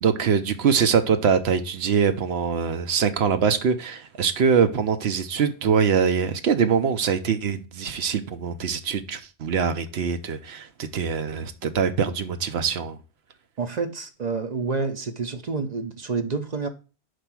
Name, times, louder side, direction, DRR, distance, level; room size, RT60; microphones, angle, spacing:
voice 1, 0.0-13.0, right 6 dB, 70° right, 1.0 m, -23 dB
voice 2, 13.6-16.7, right 4 dB, 45° right, 0.7 m, -28 dB
5.1 x 4.5 x 5.9 m
omnidirectional pair, 1.1 m